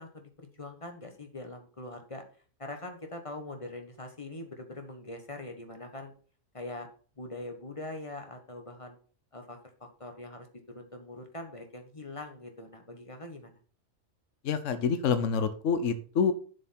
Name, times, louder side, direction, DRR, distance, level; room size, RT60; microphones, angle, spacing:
voice 1, 0.0-2.2 2.6-6.1 6.5-6.9 7.2-9.0 9.3-10.5 10.7-13.5, left 2 dB, 25° left, 5 dB, 1.2 m, -43 dB
voice 2, 14.4-16.3, left 6 dB, 70° left, 11 dB, 1.2 m, -27 dB
7.4 x 6.8 x 4.4 m, 0.40 s
omnidirectional pair, 1.4 m